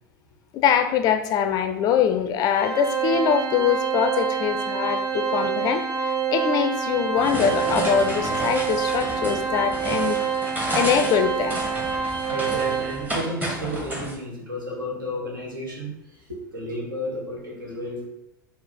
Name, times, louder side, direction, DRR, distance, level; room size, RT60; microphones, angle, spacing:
voice 1, 0.5-10.2 10.7-11.6, left 8 dB, 35° left, 8 dB, 0.4 m, -23 dB
Organ, 2.5-13.3, right 6 dB, 45° right, 0.6 m, -26 dB
sound 1, 7.1-14.1, right 1 dB, 15° right, 0.9 m, -31 dB
voice 2, 12.3-15.9 16.3-18.1, equal, 80° right, -2 dB, 1.2 m, -32 dB
4.6 x 2.0 x 3.9 m, 0.87 s
figure-of-eight pair, 85°, 11 cm